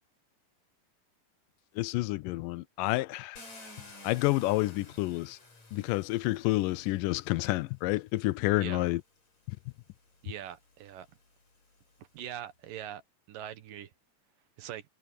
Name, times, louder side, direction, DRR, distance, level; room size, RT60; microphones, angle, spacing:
voice 1, 1.8-3.4 4.0-5.4 5.7-9.0, left 19 dB, 85° left, 2.2 m, -29 dB
Car, 3.4-7.5 8.4-8.5 9.0-12.3, left 2 dB, 55° left, 8.4 m, -54 dB
voice 2, 8.5-8.9 10.2-11.1 12.1-13.0 13.3-13.9 14.6-14.8, right 11 dB, 90° right, 3.1 m, -42 dB
omnidirectional pair, 3.8 m